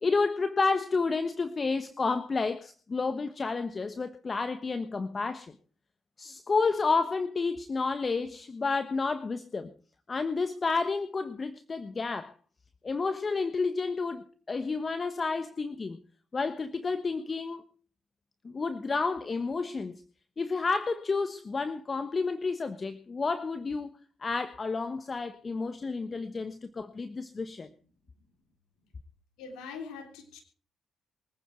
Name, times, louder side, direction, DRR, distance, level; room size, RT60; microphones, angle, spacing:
voice 1, 0.0-5.5 6.2-9.7 10.1-12.3 12.8-16.0 16.3-17.6 18.4-20.0 20.4-23.9 24.2-27.7, left 4 dB, 40° left, 1.2 m, -30 dB
voice 2, 29.4-30.4, left 5 dB, 80° left, 3.6 m, -42 dB
23.5 x 9.5 x 4.6 m
hypercardioid pair, 50°, 0 cm